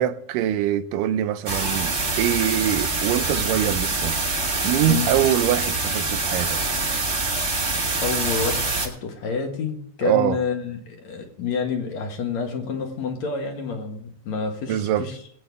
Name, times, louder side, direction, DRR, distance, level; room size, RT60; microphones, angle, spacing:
voice 1, 0.0-4.2 4.6-6.6 10.0-10.4 14.7-15.1, right 12 dB, 90° right, 2.3 m, -23 dB
sound 1, 1.5-8.9, right 3 dB, 30° right, 1.3 m, -25 dB
voice 2, 8.0-15.2, left 5 dB, 60° left, 2.7 m, -28 dB
21.5 x 8.8 x 3.5 m
omnidirectional pair, 3.7 m